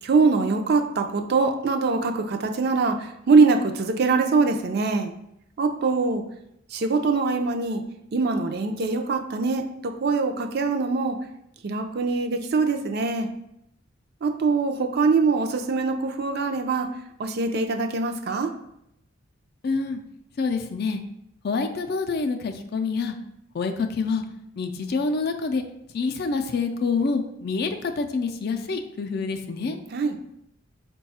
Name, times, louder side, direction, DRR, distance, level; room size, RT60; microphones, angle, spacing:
voice 1, 0.0-5.1 5.6-6.2 6.7-7.8 8.1-11.2 11.6-13.3 14.2-16.9 17.2-18.5 29.9-30.2, right 4 dB, 50° right, 5 dB, 0.4 m, -23 dB
voice 2, 19.6-20.0 20.4-21.0 21.4-23.2 23.5-24.2 24.6-25.6 25.9-29.8, left 4 dB, 50° left, 6 dB, 0.4 m, -27 dB
4.6 x 2.3 x 4.1 m, 0.79 s
head